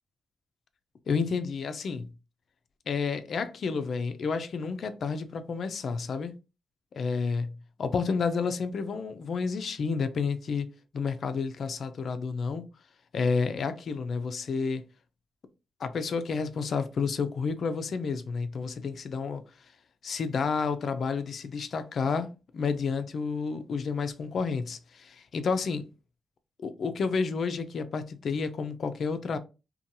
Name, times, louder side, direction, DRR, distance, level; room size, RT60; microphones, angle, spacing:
voice 1, 1.1-2.1 2.9-6.3 7.0-10.7 10.9-12.6 13.1-14.8 15.8-19.4 20.0-25.9 26.6-29.4, left 5 dB, 55° left, 0.3 m, -30 dB
2.7 x 2.2 x 2.6 m
wide cardioid pair, 140°, 0 cm